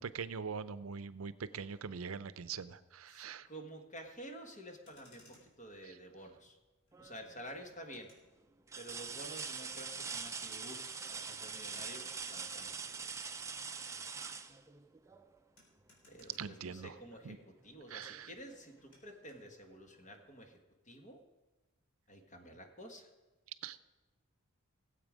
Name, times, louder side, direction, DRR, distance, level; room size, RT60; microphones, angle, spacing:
voice 1, 0.0-3.5 5.8-6.0 14.2-14.3 16.4-17.0 17.2-17.4 17.9-18.3 23.6-23.8, right 6 dB, 75° right, 14 dB, 0.6 m, -43 dB
voice 2, 3.1-6.6 7.0-8.1 8.8-12.7 16.1-17.4 17.6-20.6 20.8-21.2 22.1-23.1, equal, 35° left, 4 dB, 1.5 m, -50 dB
Motor vehicle (road), 4.7-17.3 17.5-19.5, left 1 dB, 75° left, 4.0 m, -68 dB
sound 1, 6.9-7.4 8.0-8.1 8.7-15.4 17.1-17.3 17.7-18.8 20.1-20.2, right 5 dB, 15° right, 0.5 m, -44 dB
18.0 x 8.1 x 5.1 m, 1.1 s
head